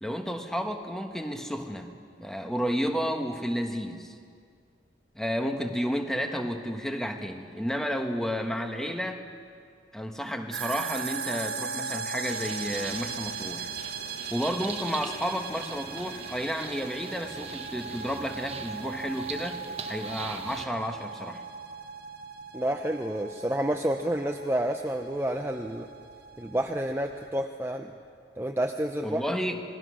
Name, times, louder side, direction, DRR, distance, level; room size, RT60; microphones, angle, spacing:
voice 1, 0.0-1.9 2.2-4.1 5.1-9.2 9.9-13.7 14.3-21.4 29.0-29.6, equal, 5° left, 4 dB, 1.4 m, -31 dB
sound 1, 10.5-27.3, right 5 dB, 70° right, 1.3 m, -38 dB
sound 2, 12.3-20.7, right 5 dB, 35° right, 1.2 m, -42 dB
voice 2, 22.5-25.9 26.4-27.9 28.4-29.2, right 1 dB, 15° right, 4 dB, 0.7 m, -29 dB
27.0 x 20.5 x 6.4 m, 2.3 s
head